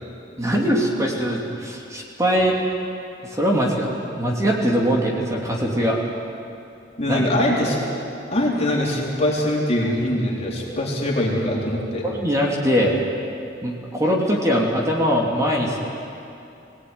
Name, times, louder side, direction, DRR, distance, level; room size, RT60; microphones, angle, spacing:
voice 1, 0.4-2.6 3.2-3.9 4.1-6.0 7.0-7.3 12.0-13.0 13.6-15.8, equal, 15° right, -2 dB, 3.1 m, -21 dB
voice 2, 7.0-7.8 8.3-12.1, left 1 dB, 35° left, -3 dB, 4.2 m, -22 dB
22.0 x 17.5 x 9.8 m, 2.7 s
head